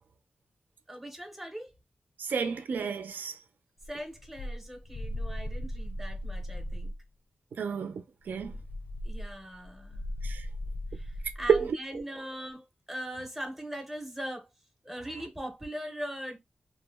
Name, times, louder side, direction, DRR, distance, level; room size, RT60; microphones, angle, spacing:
voice 1, 0.9-1.7 3.9-6.9 9.0-10.0 10.9-14.5 14.8-16.4, equal, 5° right, 0.6 m, -40 dB
voice 2, 2.2-3.4 7.6-8.5 10.2-10.5 11.5-11.7, right 6 dB, 65° right, 0.4 m, -29 dB
sound 1, 3.8-7.0 8.2-11.7, left 1 dB, 50° left, 0.4 m, -38 dB
2.5 x 2.0 x 3.3 m
wide cardioid pair, 175°, 3 cm